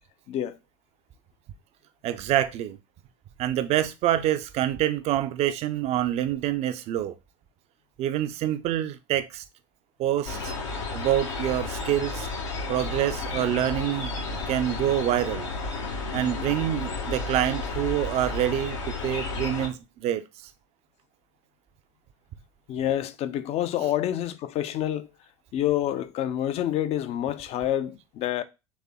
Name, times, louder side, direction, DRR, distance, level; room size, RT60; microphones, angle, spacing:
voice 1, 2.0-2.8 3.4-7.1 8.0-9.4 10.0-10.5 10.9-12.3 12.7-14.1 14.5-15.5 16.1-20.2 23.8-23.9, right 12 dB, 40° right, 0.5 m, -26 dB
sound 1, 10.3-19.7, left 3 dB, 70° left, 1.0 m, -32 dB
voice 2, 22.7-25.1 25.5-28.4, left 12 dB, 40° left, 0.5 m, -27 dB
4.2 x 3.3 x 3.5 m
figure-of-eight pair, 75°, 16 cm